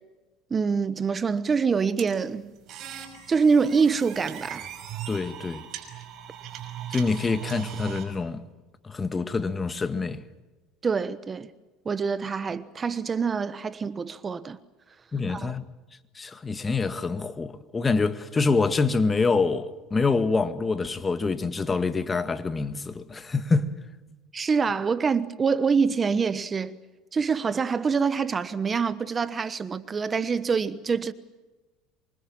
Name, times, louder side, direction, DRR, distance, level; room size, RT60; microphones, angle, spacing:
voice 1, 0.5-2.5 3.3-4.7 10.8-11.5 11.8-14.6 15.3-15.5 24.3-26.8 27.1-31.1, right 5 dB, 25° right, 1.1 m, -25 dB
sound 1, 2.0-8.0, right 9 dB, 50° right, 5.9 m, -38 dB
voice 2, 5.1-5.7 6.9-8.4 8.8-10.2 15.1-15.6 16.1-23.7, left 4 dB, 20° left, 1.9 m, -26 dB
27.0 x 24.0 x 7.4 m
supercardioid pair, 105°, 0 cm